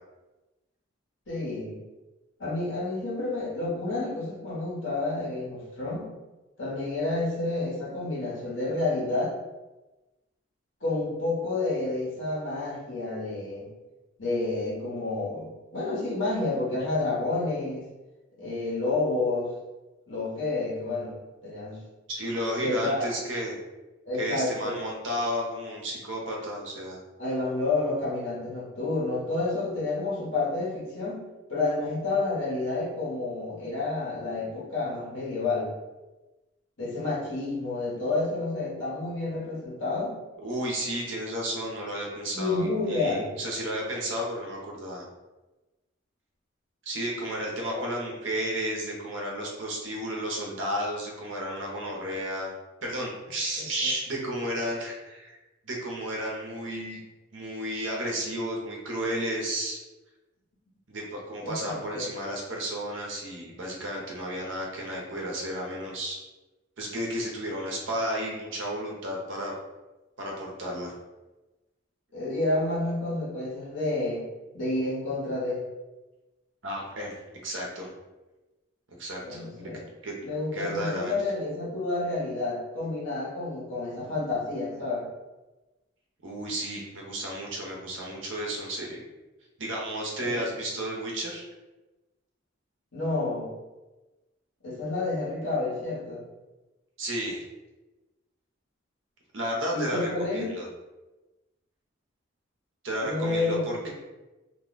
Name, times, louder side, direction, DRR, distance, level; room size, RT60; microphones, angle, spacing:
voice 1, 1.3-1.8 2.4-6.1 6.6-9.3 10.8-13.7 14.2-17.8 18.4-19.5 20.1-21.8 22.6-23.1 24.0-24.8 27.2-31.2 31.5-35.7 36.8-40.2 42.3-43.3 47.7-47.8 61.4-62.1 72.1-74.2 74.5-75.6 79.2-79.8 80.2-85.1 90.2-90.4 92.9-93.5 94.6-96.2 99.7-100.5 103.0-103.6, left 2 dB, 70° left, -6 dB, 1.2 m, -29 dB
voice 2, 22.1-23.5 24.2-27.0 40.4-45.0 46.9-52.5 52.8-55.4 55.6-57.0 57.3-59.8 60.9-66.2 66.8-69.5 70.2-70.9 76.6-77.1 77.4-77.9 79.0-79.7 80.0-80.1 80.5-81.1 86.2-89.0 89.6-91.4 97.0-97.4 99.3-100.6 102.8-103.9, right 1 dB, 70° right, -2 dB, 0.8 m, -32 dB
2.7 x 2.2 x 3.9 m, 1.1 s
head